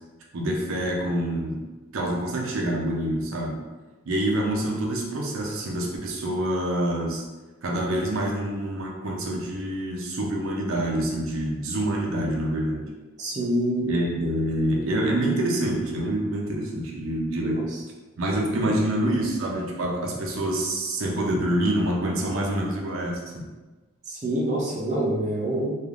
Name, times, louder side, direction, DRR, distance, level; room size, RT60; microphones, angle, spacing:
voice 1, 0.3-1.6 1.9-3.6 4.1-7.2 7.6-12.9 13.8-17.6 18.2-23.4, right 1 dB, 80° right, -1 dB, 0.5 m, -26 dB
voice 2, 13.2-13.9 17.4-17.6 18.6-18.7 24.1-25.8, right 1 dB, 35° right, -4 dB, 0.5 m, -26 dB
3.2 x 2.3 x 2.4 m, 1.2 s
head